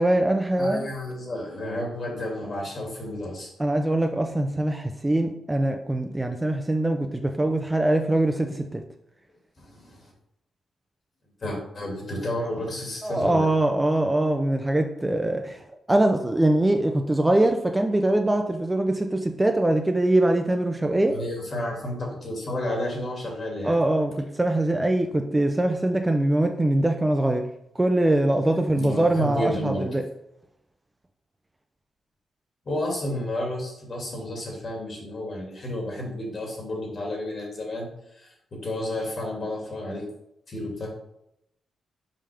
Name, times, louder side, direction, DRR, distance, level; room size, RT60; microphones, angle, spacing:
voice 1, 0.0-0.9 3.6-8.8 13.0-15.6 15.9-21.2 23.6-27.5 27.8-30.0, right 1 dB, 15° right, 4 dB, 0.4 m, -23 dB
voice 2, 0.6-3.5 9.6-10.1 11.4-13.5 21.1-23.8 28.7-29.9 32.7-37.9 38.2-40.0 40.5-40.9, left 1 dB, 45° left, -1 dB, 2.1 m, -31 dB
5.6 x 5.0 x 3.4 m, 0.80 s
cardioid pair, 115°, 0 cm